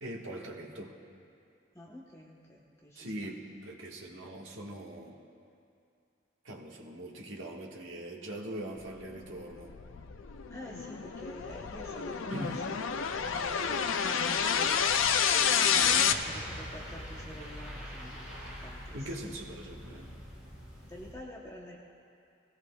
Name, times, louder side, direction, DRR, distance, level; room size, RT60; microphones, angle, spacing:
voice 1, 0.0-0.9 2.9-5.2 6.4-9.8 12.3-12.6 18.9-20.1, right 1 dB, 80° right, -1 dB, 1.5 m, -41 dB
voice 2, 1.7-3.3 10.5-14.9 15.2-19.4 20.9-21.8, equal, 15° left, -3 dB, 1.0 m, -48 dB
sound 1, 9.2-16.1, left 7 dB, 80° left, 0.5 m, -29 dB
sound 2, 15.7-21.1, equal, 5° right, 3.9 m, -44 dB
20.0 x 16.5 x 2.4 m, 2.5 s
head